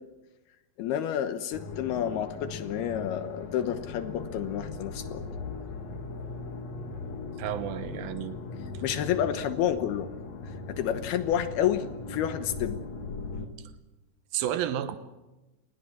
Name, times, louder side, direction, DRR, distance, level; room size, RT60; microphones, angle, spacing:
voice 1, 0.8-5.2 8.8-10.1 10.7-12.8, left 10 dB, 75° left, 10 dB, 2.5 m, -29 dB
sound 1, 1.5-13.5, left 3 dB, 50° left, 2.2 m, -39 dB
voice 2, 7.4-8.4 14.3-15.0, right 11 dB, 75° right, 11 dB, 2.2 m, -31 dB
27.0 x 20.5 x 7.4 m, 1.1 s
omnidirectional pair, 5.7 m